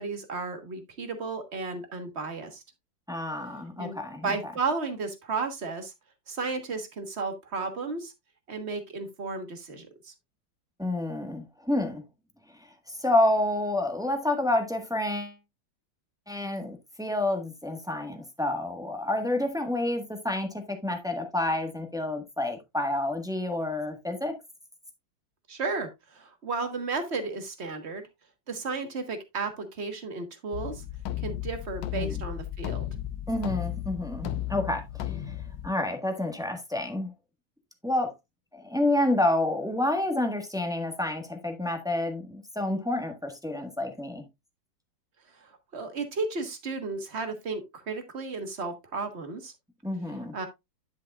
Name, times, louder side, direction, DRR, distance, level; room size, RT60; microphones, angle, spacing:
voice 1, 0.0-2.6 3.8-5.9 6.3-8.1 8.5-10.1 25.5-28.0 28.5-30.8 31.2-32.9 45.4-49.5 50.3-50.5, right 4 dB, 35° right, 1.5 m, -33 dB
voice 2, 3.1-4.5 10.8-12.0 12.9-15.4 16.3-24.4 31.9-32.2 33.3-35.4 35.6-37.1 37.8-38.1 38.5-44.3 49.8-50.3, left 1 dB, ahead, 1.0 m, -29 dB
sound 1, 30.5-35.7, left 12 dB, 70° left, 1.4 m, -34 dB
10.5 x 6.6 x 2.4 m
omnidirectional pair, 2.2 m